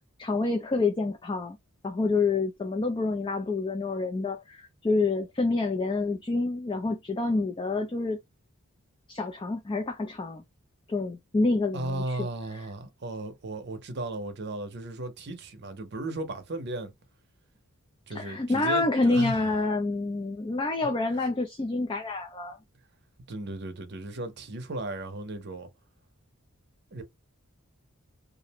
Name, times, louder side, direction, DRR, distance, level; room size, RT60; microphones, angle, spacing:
voice 1, 0.2-1.6 1.8-8.2 9.1-10.4 10.9-12.2 18.1-22.6, left 3 dB, 20° left, 0.3 m, -27 dB
voice 2, 11.7-16.9 18.1-19.6 23.3-25.7 26.9-27.0, right 2 dB, 50° right, 0.6 m, -35 dB
2.5 x 2.1 x 2.8 m
head